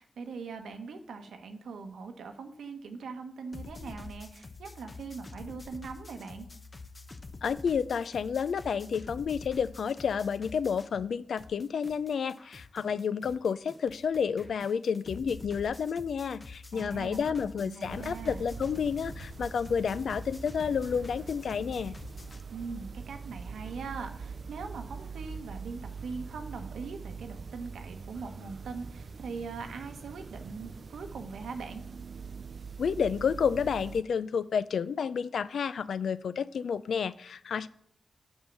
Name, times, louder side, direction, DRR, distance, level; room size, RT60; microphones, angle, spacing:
voice 1, 0.0-6.5 16.7-18.4 22.5-31.8, right 4 dB, 90° right, 6 dB, 0.9 m, -41 dB
sound 1, 3.5-11.1 11.4-22.4, left 3 dB, 45° left, 0.8 m, -47 dB
voice 2, 7.4-22.0 32.8-37.7, left 6 dB, 80° left, 16 dB, 0.3 m, -30 dB
sound 2, 17.9-34.0, right 5 dB, 65° right, 0.4 m, -43 dB
7.1 x 5.6 x 6.4 m, 0.66 s
supercardioid pair, 40°, 0 cm